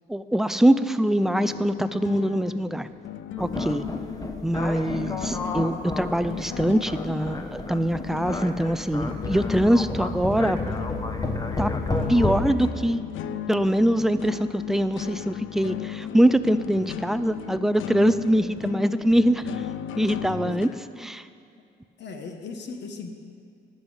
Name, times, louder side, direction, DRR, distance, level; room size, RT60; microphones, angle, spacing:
voice 1, 0.1-2.9 3.4-3.8 4.4-10.8 11.6-11.7 12.1-13.0 13.5-19.5 20.0-20.7 21.0-21.3, right 1 dB, ahead, 12 dB, 0.3 m, -23 dB
sound 1, 1.2-20.7, left 10 dB, 80° left, 0.5 m, -36 dB
sound 2, 3.4-12.5, left 2 dB, 20° left, 0.8 m, -31 dB
voice 2, 20.4-20.8 22.0-23.1, left 4 dB, 65° left, 5 dB, 1.0 m, -38 dB
11.0 x 5.5 x 7.9 m, 2.4 s
cardioid pair, 90°, 20 cm